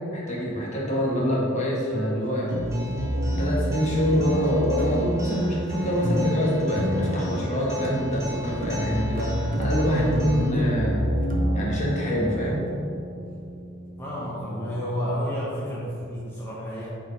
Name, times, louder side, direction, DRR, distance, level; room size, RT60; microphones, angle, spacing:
voice 1, 0.1-2.6 3.4-11.1 11.5-12.6, equal, 35° left, -4 dB, 1.5 m, -25 dB
Acoustic guitar, 2.5-10.5, left 1 dB, 15° right, 1.2 m, -40 dB
sound 1, 2.5-15.3, equal, 40° right, 0.7 m, -29 dB
voice 2, 14.0-16.9, equal, 10° left, -7 dB, 1.0 m, -30 dB
8.0 x 4.7 x 4.1 m, 2.6 s
head